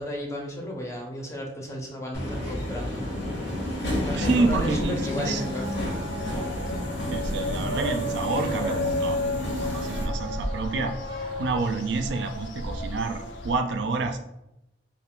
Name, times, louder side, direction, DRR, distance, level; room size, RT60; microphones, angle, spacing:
voice 1, 0.0-3.1 4.0-5.9, equal, 15° left, 0 dB, 0.6 m, -34 dB
Subway metro underground, 2.1-10.0, left 1 dB, 70° left, 0.8 m, -31 dB
voice 2, 4.2-5.4 7.1-9.2 9.6-10.9 11.4-14.2, right 3 dB, 75° right, 6 dB, 0.4 m, -28 dB
sound 1, 4.4-13.5, left 1 dB, 90° left, 0.5 m, -33 dB
Bark, 5.9-11.8, equal, 30° right, 0.6 m, -39 dB
2.4 x 2.4 x 3.5 m, 0.86 s
head